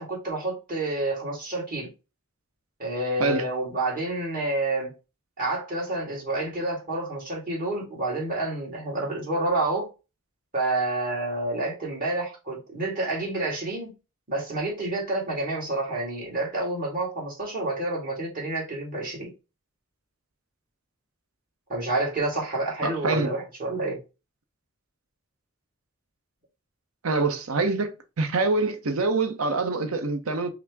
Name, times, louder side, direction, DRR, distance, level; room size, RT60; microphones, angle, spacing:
voice 1, 0.0-1.9 2.8-4.9 5.4-9.9 10.5-13.9 14.3-19.3 21.7-24.0, right 2 dB, 40° right, 1.8 m, -29 dB
voice 2, 22.8-23.3 27.0-30.5, right 3 dB, 80° right, 0.7 m, -25 dB
5.8 x 2.1 x 3.4 m
head